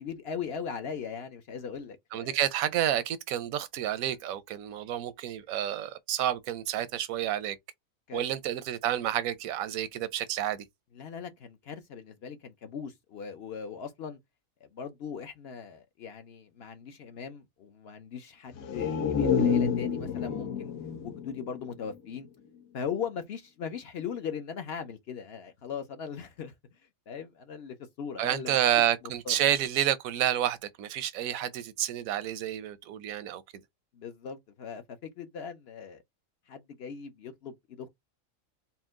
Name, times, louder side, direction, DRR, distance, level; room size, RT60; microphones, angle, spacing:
voice 1, 0.0-2.5 8.1-8.3 10.9-14.2 14.6-20.7 21.0-22.3 22.7-26.5 27.1-28.6 29.3-29.4 33.9-36.0 36.5-37.9, left 7 dB, 60° left, 0.7 m, -39 dB
voice 2, 2.1-7.6 8.1-10.6 28.2-33.4, right 11 dB, 85° right, 1.0 m, -29 dB
sound 1, 18.5-22.3 22.6-22.7, left 6 dB, 80° left, 1.2 m, -29 dB
4.3 x 2.2 x 3.5 m
omnidirectional pair, 1.4 m